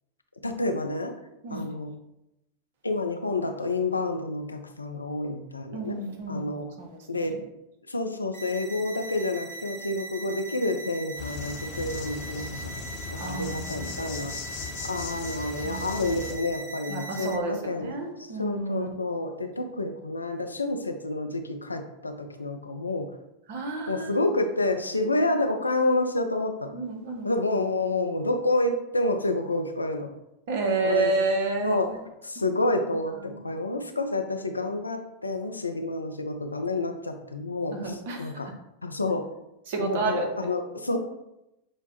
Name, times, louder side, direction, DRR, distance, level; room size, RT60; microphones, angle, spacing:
voice 1, 0.4-1.1 1.5-1.9 2.8-6.0 6.3-6.7 7.1-7.4 7.9-12.7 13.1-14.3 14.9-18.0 18.4-23.1 23.9-26.8 27.2-30.1 30.8-31.1 31.6-31.9 32.2-38.5 38.8-39.3 39.8-41.0, left 2 dB, 80° left, 5 dB, 0.4 m, -29 dB
voice 2, 5.7-7.4 13.2-14.0 15.6-16.0 16.9-18.9 23.5-24.2 24.9-25.1 26.7-27.3 30.5-32.0 32.4-32.5 33.2-33.5 37.7-38.5 39.7-40.3, right 3 dB, 50° right, 3 dB, 0.7 m, -30 dB
sound 1, 8.3-17.3, right 2 dB, 25° right, 1.1 m, -40 dB
Insect, 11.2-16.3, left 5 dB, 50° left, 0.7 m, -38 dB
6.1 x 2.1 x 2.8 m, 0.89 s
figure-of-eight pair, 90°, 0 cm